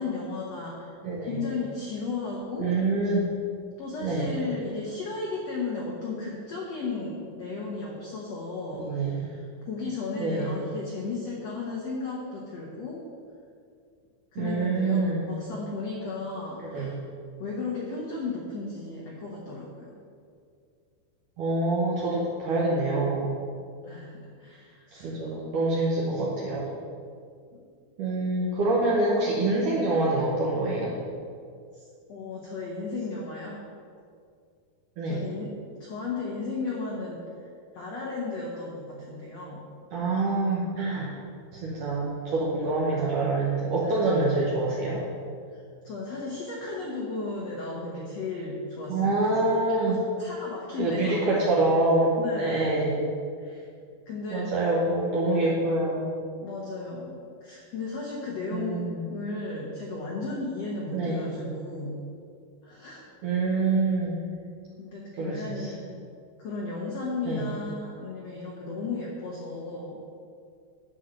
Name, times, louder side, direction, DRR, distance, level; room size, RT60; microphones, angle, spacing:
voice 1, 0.0-0.9 1.2-2.7 3.8-13.0 14.3-17.0 17.4-19.9 23.8-25.1 27.5-27.6 31.7-33.6 35.0-35.5 35.8-37.2 37.7-39.6 43.8-44.1 45.5-51.6 52.2-52.8 53.4-53.7 54.1-54.5 56.4-58.8 59.1-62.0 62.6-63.0 64.8-65.9 66.4-70.1, left 3 dB, 85° left, -3 dB, 1.4 m, -35 dB
voice 2, 1.0-1.4 2.6-3.3 4.0-4.3 8.8-9.2 10.2-10.5 14.4-15.3 16.7-16.9 21.4-23.3 25.0-26.7 28.0-30.9 35.0-35.2 39.9-41.1 41.5-45.0 48.9-50.0 50.8-53.0 54.3-56.1 58.5-59.0 60.9-61.2 63.2-64.2 65.2-65.7 67.3-67.5, right 2 dB, 65° right, -5 dB, 2.2 m, -26 dB
9.9 x 4.5 x 7.6 m, 2.3 s
omnidirectional pair, 4.7 m